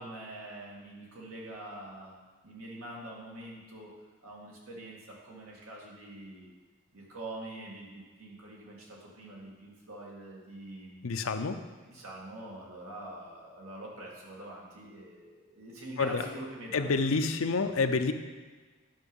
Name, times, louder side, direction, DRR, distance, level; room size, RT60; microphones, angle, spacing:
voice 1, 0.0-2.1 2.4-3.9 4.2-6.5 6.9-11.1 11.9-17.1, right 1 dB, 90° right, -3 dB, 2.3 m, -45 dB
voice 2, 11.0-11.6 16.0-16.2 16.7-18.1, left 4 dB, 80° left, 7 dB, 0.6 m, -28 dB
10.5 x 5.7 x 5.3 m, 1.4 s
head